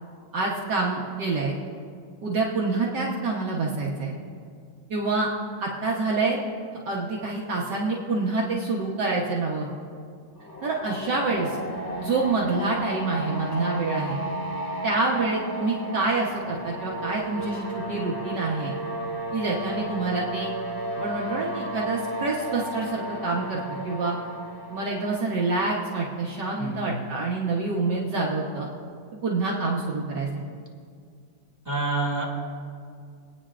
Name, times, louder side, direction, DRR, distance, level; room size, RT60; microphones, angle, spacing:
voice 1, 0.3-1.6 2.2-4.1 4.9-5.3 5.6-6.4 6.8-9.7 10.6-11.6 12.0-14.2 14.8-18.7 19.3-20.5 21.0-24.2 24.7-28.7 29.2-30.4, right 3 dB, 60° right, -4 dB, 1.7 m, -27 dB
sound 1, 10.4-26.2, right 1 dB, 10° left, 1.5 m, -34 dB
voice 2, 26.6-26.9 31.6-32.2, right 2 dB, 10° right, -3 dB, 2.2 m, -27 dB
26.0 x 9.3 x 2.5 m, 2.2 s
omnidirectional pair, 2.2 m